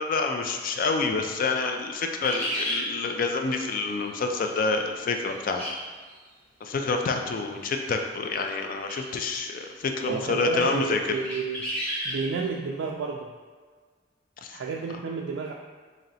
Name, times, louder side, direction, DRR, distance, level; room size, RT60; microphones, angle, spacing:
voice 1, 0.0-5.6 6.6-11.0 14.4-14.6, left 4 dB, 50° left, 4 dB, 0.3 m, -28 dB
sound 1, 2.1-2.8 5.6-5.7 6.1-6.2 8.8-9.0 9.7-9.8 10.5-10.7 11.1-12.2, equal, 5° left, 1.5 m, -31 dB
voice 2, 10.1-11.6 12.0-13.3 14.5-15.5, right 5 dB, 85° right, -1 dB, 0.3 m, -31 dB
3.1 x 2.8 x 3.9 m, 1.5 s
head